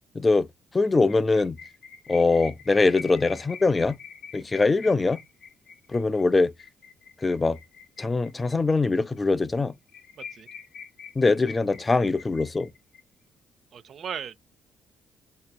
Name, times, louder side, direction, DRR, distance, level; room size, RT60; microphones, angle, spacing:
voice 1, 0.1-0.5 0.7-1.6 2.1-4.0 4.3-5.2 5.9-6.5 7.2-7.6 8.0-9.7 11.2-12.7, left 3 dB, 25° left, 0.3 m, -22 dB
sound 1, 0.9-8.8 9.2-9.3 9.5-9.6 9.9-13.0, left 6 dB, 60° left, 0.7 m, -45 dB
voice 2, 10.2-10.5 13.7-14.4, right 8 dB, 55° right, 0.3 m, -37 dB
2.8 x 2.7 x 2.2 m
figure-of-eight pair, 45°, 0 cm